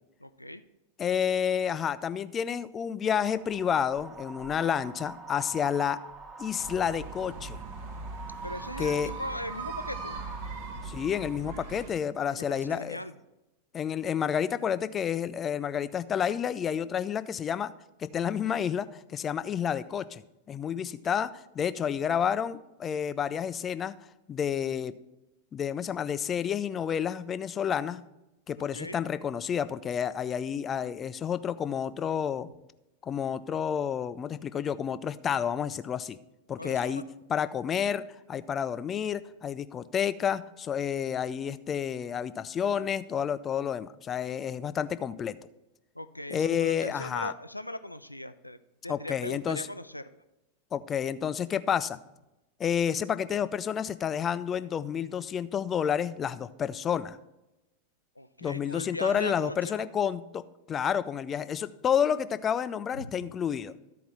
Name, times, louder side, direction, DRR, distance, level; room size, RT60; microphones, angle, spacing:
voice 1, 0.2-0.6 8.4-10.2 12.2-13.2 28.7-29.0 36.6-37.0 45.9-48.6 48.8-50.0 58.2-59.9 62.9-63.3, left 1 dB, 85° left, 12 dB, 0.4 m, -39 dB
voice 2, 1.0-6.0 6.4-7.6 8.8-9.1 10.8-13.0 13.7-17.7 18.0-20.2 20.5-23.9 24.3-24.9 25.5-28.0 28.5-32.5 33.0-36.2 36.5-37.0 37.3-38.0 38.3-45.4 46.3-47.3 48.9-49.7 50.7-52.0 52.6-57.2 58.4-63.7, left 8 dB, 25° left, 14 dB, 0.4 m, -30 dB
Wind, 3.2-11.4, right 4 dB, 25° right, 1.3 m, -44 dB
sound 1, 6.6-11.9, right 3 dB, 50° right, 0.9 m, -41 dB
12.5 x 4.7 x 5.4 m, 0.95 s
figure-of-eight pair, 90°, 0 cm